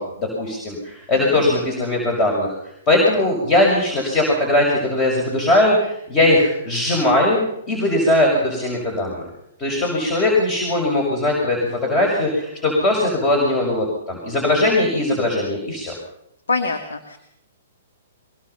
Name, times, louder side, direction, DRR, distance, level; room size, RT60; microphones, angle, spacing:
voice 1, 0.0-2.5 2.9-7.4 7.7-9.2 9.6-15.9, left 1 dB, 25° left, 1 dB, 6.6 m, -19 dB
voice 2, 16.5-17.2, left 4 dB, 75° left, 6 dB, 2.2 m, -24 dB
23.5 x 23.0 x 5.8 m, 0.76 s
figure-of-eight pair, 120°, 0 cm